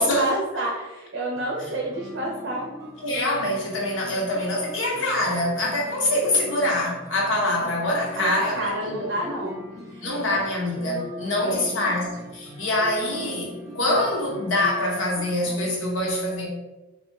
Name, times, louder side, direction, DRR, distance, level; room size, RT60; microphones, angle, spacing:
voice 1, 0.0-2.7 6.4-6.6 7.4-7.5 8.2-10.2 10.8-11.9, right 1 dB, 60° right, -1 dB, 0.6 m, -30 dB
sound 1, 1.3-15.7, left 1 dB, 15° right, 0.6 m, -43 dB
voice 2, 3.0-9.1 10.0-16.5, left 1 dB, 80° left, -2 dB, 1.1 m, -25 dB
3.6 x 2.9 x 3.1 m, 1.1 s
head